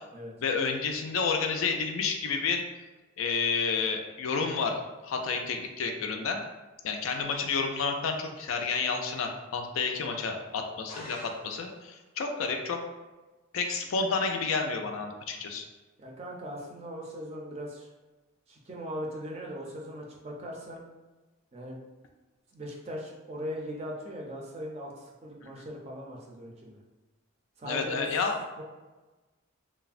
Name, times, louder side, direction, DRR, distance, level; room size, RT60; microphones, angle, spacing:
voice 1, 0.4-2.6 3.2-6.4 6.8-12.8 13.5-15.6 25.4-25.7 27.6-28.4, left 5 dB, 75° left, 4 dB, 0.4 m, -30 dB
sound 1, 10.9-12.0, equal, 20° left, 0.5 m, -47 dB
voice 2, 16.0-17.9 18.5-20.8 21.5-21.8 22.5-26.8 27.6-28.1 28.6-28.7, equal, 30° right, -2 dB, 0.4 m, -39 dB
3.2 x 2.0 x 2.4 m, 1.2 s
head